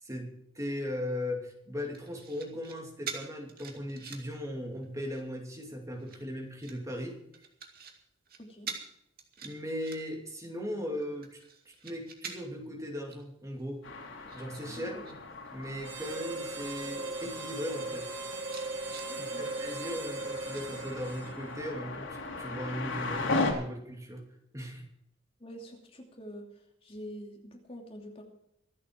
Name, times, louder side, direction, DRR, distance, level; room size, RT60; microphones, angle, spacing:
voice 1, 0.0-7.2 9.4-11.4 11.7-13.8 14.3-15.1 15.5-18.1 19.1-24.2 24.5-24.8, equal, 15° right, 1 dB, 2.5 m, -38 dB
sound 1, 1.9-2.7 3.1-4.4 4.8-5.3 5.9-6.8 7.3-7.9 8.2-8.4 8.7-8.8 9.2-10.3 10.7-12.6 13.1-13.2 13.6-15.1 15.4-15.8 16.5-16.6 16.8-17.5 17.9-18.0 18.4-19.1 20.5-21.2 21.7-21.8, right 6 dB, 50° right, 2.4 m, -45 dB
sound 2, 13.8-23.5, left 3 dB, 85° left, 3.4 m, -38 dB
Harmonica, 15.8-21.8, right 2 dB, 70° right, 2.5 m, -38 dB
voice 2, 19.1-19.4 25.4-28.2, equal, 30° left, 1 dB, 2.8 m, -46 dB
25.0 x 8.6 x 4.6 m, 0.76 s
head